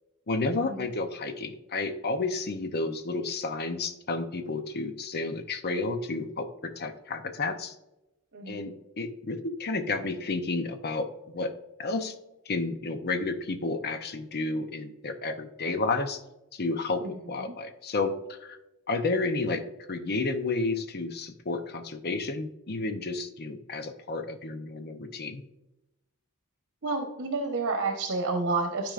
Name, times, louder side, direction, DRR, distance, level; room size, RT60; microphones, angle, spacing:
voice 1, 0.3-7.7 8.5-11.5 11.8-12.1 12.5-16.2 16.5-18.1 18.4-18.6 18.9-19.6 19.9-25.4, left 3 dB, 45° left, 7 dB, 0.7 m, -31 dB
voice 2, 8.3-8.7 17.0-17.5 26.8-28.9, right 3 dB, 55° right, 3 dB, 1.0 m, -30 dB
12.5 x 5.1 x 2.5 m, 0.94 s
head